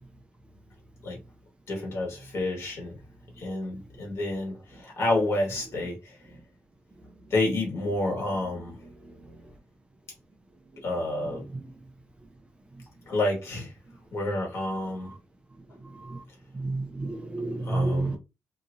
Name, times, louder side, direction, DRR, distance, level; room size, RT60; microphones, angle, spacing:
voice 1, 1.7-3.0 3.4-6.2 7.3-8.8 10.8-11.5 13.0-13.7 14.1-15.1 17.6-18.2, left 2 dB, 65° left, 1.7 m, -29 dB
voice 2, 16.5-18.2, right 2 dB, 20° right, 0.5 m, -29 dB
2.9 x 2.4 x 2.6 m
cardioid pair, 110°, 5 cm